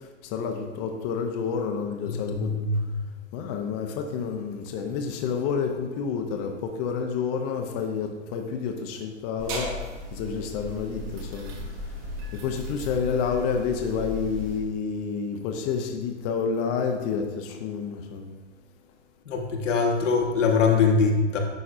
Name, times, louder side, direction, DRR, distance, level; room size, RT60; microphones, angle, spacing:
voice 1, 0.2-2.5 3.3-9.7 10.1-11.5 12.4-18.3, left 6 dB, 30° left, 3 dB, 0.6 m, -29 dB
voice 2, 2.1-2.9 19.3-21.4, left 4 dB, 75° left, 1 dB, 1.2 m, -23 dB
sound 1, 9.4-14.6, equal, 50° right, 1.7 m, -36 dB
10.5 x 4.2 x 2.5 m, 1.2 s
hypercardioid pair, 120°, 37 cm